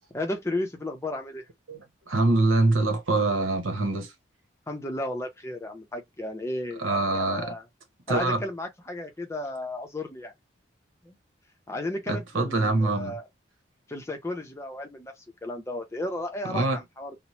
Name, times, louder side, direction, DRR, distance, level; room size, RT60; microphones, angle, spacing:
voice 1, 0.1-1.4 4.7-7.6 8.1-10.3 11.0-11.2 11.7-13.2 13.9-17.2, left 1 dB, 15° left, 0.5 m, -34 dB
voice 2, 2.1-4.1 6.8-7.5 8.1-8.4 12.1-13.2 16.5-16.8, right 2 dB, 90° right, 0.9 m, -24 dB
2.9 x 2.0 x 2.9 m
head